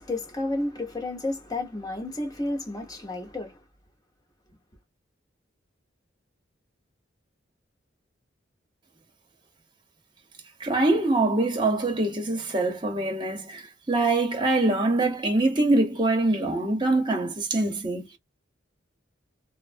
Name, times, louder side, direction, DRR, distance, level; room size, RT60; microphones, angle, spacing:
voice 1, 0.0-3.5, left 2 dB, 20° left, 0.9 m, -31 dB
voice 2, 10.6-18.1, right 2 dB, 25° right, 0.8 m, -24 dB
3.2 x 2.0 x 2.5 m
head